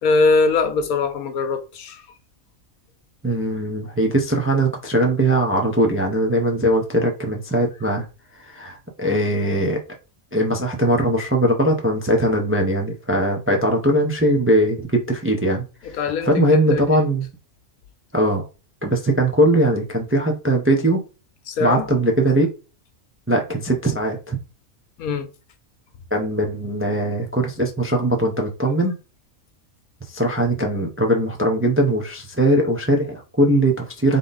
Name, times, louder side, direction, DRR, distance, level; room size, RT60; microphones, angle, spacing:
voice 1, 0.0-2.0 15.8-16.8 21.5-21.9 25.0-25.3, left 4 dB, 85° left, 1.2 m, -21 dB
voice 2, 3.2-8.1 8.5-9.8 10.3-15.9 16.2-17.2 18.1-18.4 18.8-21.0 21.6-22.5 23.3-24.4 26.1-28.9 30.1-34.2, right 1 dB, 15° right, 0.4 m, -20 dB
3.6 x 3.4 x 3.9 m
omnidirectional pair, 1.5 m